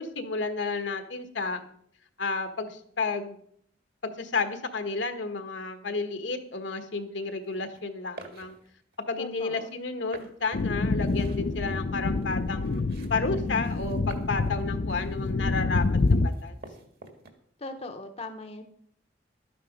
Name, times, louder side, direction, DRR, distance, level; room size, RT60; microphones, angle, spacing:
voice 1, 0.0-1.6 2.2-3.4 4.0-8.6 9.1-12.8 13.1-16.6, left 4 dB, 75° left, 7 dB, 1.4 m, -31 dB
sound 1, 7.4-7.8 8.2-9.0 9.6-9.7 10.1-17.3, right 3 dB, 60° right, 1.8 m, -50 dB
voice 2, 9.2-9.7 17.6-18.6, left 2 dB, 35° left, 6 dB, 0.9 m, -39 dB
sound 2, 10.5-16.3, left 3 dB, 50° left, 0.5 m, -27 dB
12.5 x 9.3 x 5.2 m, 0.66 s
head